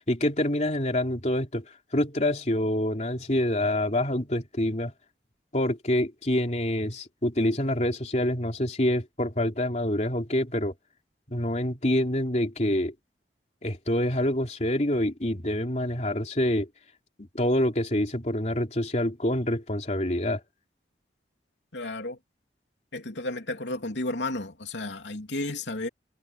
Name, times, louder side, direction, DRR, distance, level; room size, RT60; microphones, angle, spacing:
voice 1, 0.0-1.7 1.9-4.9 5.5-10.7 11.3-12.9 13.6-16.7 17.2-20.4, left 1 dB, 40° left, 3.3 m, -26 dB
voice 2, 21.7-22.2 22.9-25.9, left 2 dB, 85° left, 2.9 m, -32 dB
head